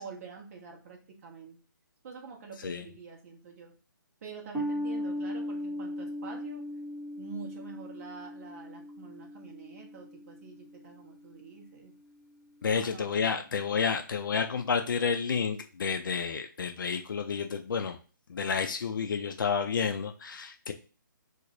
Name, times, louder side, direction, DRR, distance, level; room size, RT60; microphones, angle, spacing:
voice 1, 0.0-1.6 2.0-3.7 4.2-6.7 7.2-11.9 12.7-13.5, right 5 dB, 40° right, 1 dB, 0.9 m, -46 dB
sound 1, 4.5-11.3, equal, 5° right, 0.3 m, -38 dB
voice 2, 12.6-18.0 18.3-20.7, left 6 dB, 70° left, 6 dB, 0.4 m, -30 dB
3.2 x 2.1 x 3.7 m, 0.37 s
figure-of-eight pair, 145°, 11 cm